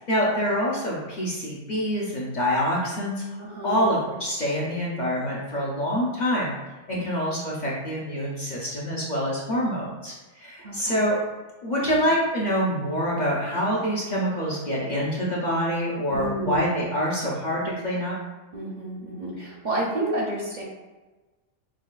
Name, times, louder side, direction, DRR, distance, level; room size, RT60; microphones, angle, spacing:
voice 1, 0.1-3.2 3.6-6.5 6.9-11.2 11.6-18.2, equal, 45° left, -5 dB, 0.7 m, -26 dB
voice 2, 3.4-3.8 6.9-7.1 10.6-11.0 11.8-12.0 16.1-16.6 18.5-20.6, right 1 dB, 50° right, -3 dB, 0.6 m, -30 dB
6.0 x 2.3 x 2.3 m, 1.2 s
omnidirectional pair, 1.2 m